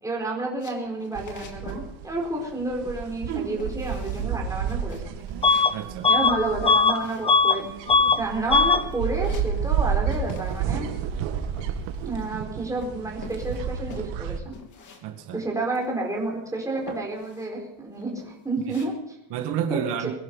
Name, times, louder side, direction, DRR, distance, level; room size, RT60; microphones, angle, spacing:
voice 1, 0.0-5.1 6.1-7.7 8.2-10.9 12.1-14.5 15.3-19.2 19.7-19.8, right 2 dB, 5° right, -2 dB, 4.7 m, -30 dB
sound 1, 0.6-1.9 2.1-2.6 2.8-3.3 3.6-4.3 4.7-7.7 8.0-8.5 8.7-9.9 10.1-10.8 11.0-12.5 12.8-15.0 15.3-15.4 15.7-16.3 16.8-17.5 17.9-18.9, left 5 dB, 45° left, 3.1 m, -46 dB
sound 2, 1.1-14.4, right 8 dB, 85° right, 2.3 m, -31 dB
Bus / Alarm, 5.4-5.7 6.0-7.6 7.9-8.2 8.5-8.8, left 4 dB, 15° left, 0.7 m, -19 dB
voice 2, 5.7-6.1 15.0-15.4 19.3-20.1, right 9 dB, 65° right, 4 dB, 2.1 m, -30 dB
22.5 x 11.5 x 5.6 m, 0.82 s
cardioid pair, 160°, 43 cm